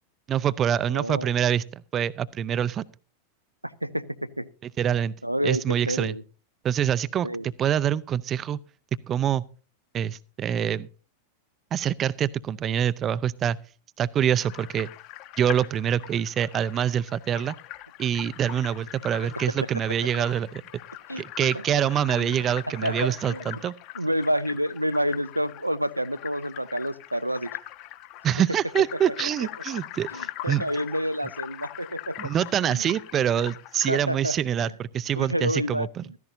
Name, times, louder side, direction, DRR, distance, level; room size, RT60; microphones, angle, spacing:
voice 1, 0.3-2.8 4.8-5.1 5.4-6.1 6.6-7.3 7.6-8.6 9.1-9.4 9.9-10.9 11.7-13.6 14.0-14.9 15.4-17.6 18.0-20.6 21.2-23.7 28.2-30.6 32.2-36.0, right 9 dB, 30° right, 0.6 m, -25 dB
voice 2, 0.9-1.3 3.6-4.5 5.2-6.2 7.2-7.4 21.1-21.2 21.7-21.8 22.1-22.4 22.8-23.6 23.9-27.5 28.9-29.1 30.1-32.3 32.6-32.9 33.9-34.4 34.6-34.7 35.1-36.2, equal, 90° right, 0.8 m, -29 dB
sound 1, 14.4-34.0, left 15 dB, 40° left, 1.5 m, -41 dB
15.5 x 14.5 x 2.7 m
figure-of-eight pair, 90°, 0 cm